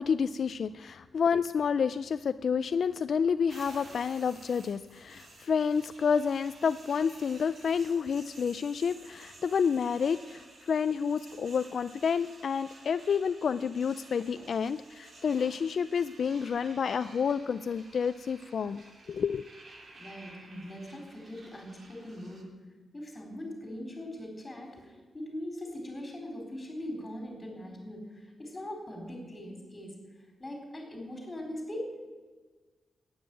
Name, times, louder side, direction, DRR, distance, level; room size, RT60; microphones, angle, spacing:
voice 1, 0.0-19.4, left 6 dB, 60° left, 12 dB, 0.3 m, -29 dB
sound 1, 3.5-22.4, right 2 dB, 50° right, 2.7 m, -53 dB
voice 2, 20.0-22.5 22.9-30.0 30.4-32.0, left 1 dB, 20° left, 2 dB, 4.3 m, -41 dB
12.5 x 9.5 x 9.2 m, 1.4 s
wide cardioid pair, 125°, 0 cm